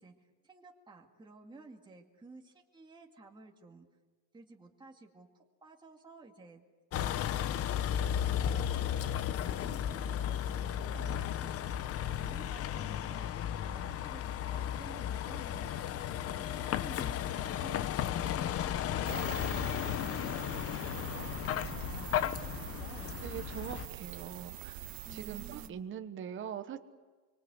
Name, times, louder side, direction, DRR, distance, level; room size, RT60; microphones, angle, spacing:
voice 1, 0.0-3.9 4.3-6.6 6.9-19.0 19.3-23.2 25.0-26.0, right 3 dB, 10° right, 1 dB, 2.1 m, -54 dB
Vehicle, 6.9-23.9, left 10 dB, 40° left, 0.8 m, -34 dB
sound 1, 19.0-25.7, right 15 dB, 65° right, 1.2 m, -44 dB
voice 2, 23.2-24.8 25.1-26.8, right 9 dB, 30° right, 8 dB, 1.2 m, -42 dB
26.0 x 25.0 x 8.2 m, 1.3 s
cardioid pair, 165°, 38 cm